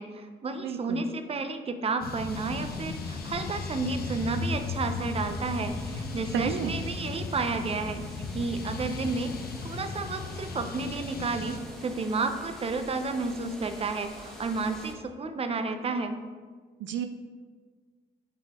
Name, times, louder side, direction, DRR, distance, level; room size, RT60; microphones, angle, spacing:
voice 1, 0.0-8.0 8.3-9.3 9.6-16.2, right 3 dB, 30° right, 8 dB, 0.6 m, -31 dB
voice 2, 0.6-1.0 6.3-6.7 16.8-17.1, right 9 dB, 70° right, 8 dB, 0.5 m, -31 dB
sound 1, 2.0-11.6, left 4 dB, 50° left, 0.7 m, -36 dB
sound 2, 2.3-14.9, equal, ahead, 1.3 m, -46 dB
10.5 x 3.9 x 3.6 m, 1.5 s
cardioid pair, 90°, 20 cm